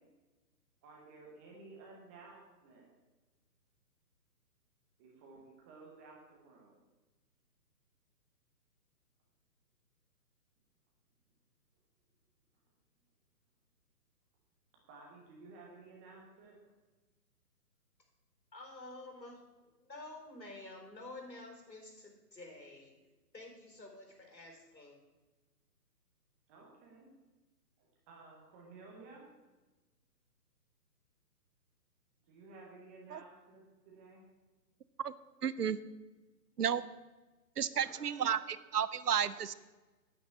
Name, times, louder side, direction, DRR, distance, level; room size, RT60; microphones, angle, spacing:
voice 1, 0.8-2.9 5.0-6.8 14.7-16.6 26.5-27.1 27.8-29.3 32.3-34.2 37.7-38.4, right 3 dB, 10° right, -2 dB, 0.8 m, -55 dB
voice 2, 18.5-19.4 19.7-22.9 23.3-25.0, left 2 dB, 85° left, 1 dB, 4.4 m, -50 dB
voice 3, 35.4-35.8 36.6-36.8 37.6-38.4 38.7-39.5, right 8 dB, 65° right, 16 dB, 0.8 m, -32 dB
9.4 x 8.8 x 7.3 m, 1.2 s
figure-of-eight pair, 145°, 50 cm